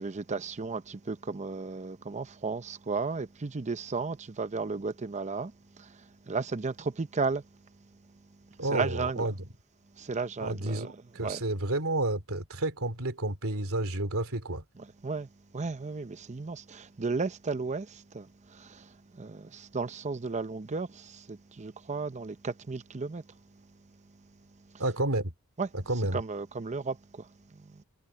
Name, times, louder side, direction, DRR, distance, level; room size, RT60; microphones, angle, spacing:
voice 1, 0.0-7.4 8.6-9.3 10.0-10.9 11.2-11.4 14.8-15.3 15.5-23.4 25.6-25.7 26.1-27.8, right 4 dB, 30° right, 0.6 m, -34 dB
voice 2, 8.6-9.4 10.4-14.6 24.8-25.3 25.9-26.2, right 2 dB, 65° right, 3.5 m, -30 dB
head